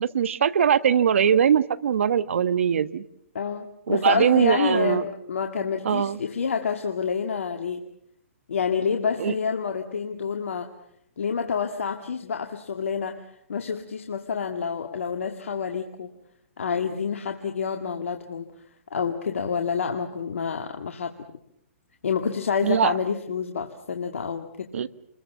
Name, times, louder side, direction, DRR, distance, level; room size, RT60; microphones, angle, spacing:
voice 1, 0.0-3.0 3.9-5.0 5.8-6.2 9.2-9.3 22.6-22.9 24.7-24.9, right 8 dB, 70° right, 15 dB, 1.3 m, -21 dB
voice 2, 3.3-7.8 8.5-10.7 11.2-16.1 16.6-18.5 18.9-21.1 22.0-24.7, left 6 dB, 75° left, 4 dB, 2.0 m, -28 dB
28.5 x 22.0 x 7.0 m, 0.75 s
hypercardioid pair, 135°, 7 cm